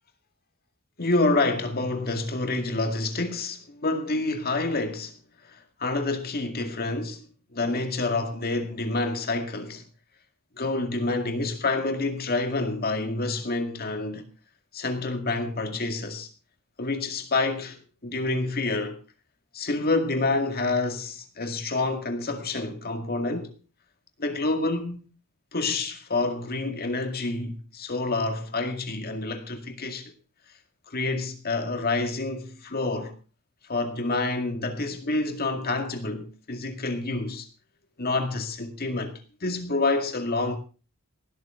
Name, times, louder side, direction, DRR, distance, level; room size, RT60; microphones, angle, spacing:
voice 1, 1.0-5.2 5.4-7.3 7.5-9.8 10.6-14.3 14.7-16.3 16.8-19.0 19.5-23.5 24.2-25.1 25.5-30.1 30.9-33.1 33.7-37.5 38.0-39.1 39.4-40.6, left 2 dB, 45° left, 2.1 m, -28 dB
18.5 x 12.5 x 3.7 m
head